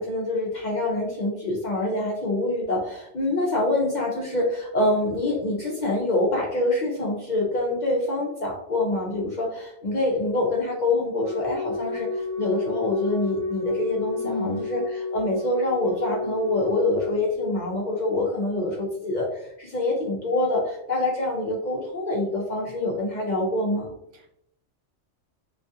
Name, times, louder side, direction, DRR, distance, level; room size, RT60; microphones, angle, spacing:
voice 1, 0.0-23.9, left 2 dB, 65° left, -3 dB, 0.4 m, -26 dB
Wind instrument woodwind instrument, 11.2-17.3, left 3 dB, 20° right, 0.6 m, -31 dB
voice 2, 14.2-14.7 24.1-24.3, left 2 dB, 65° right, 0 dB, 0.8 m, -33 dB
2.3 x 2.3 x 2.6 m, 0.77 s
omnidirectional pair, 1.3 m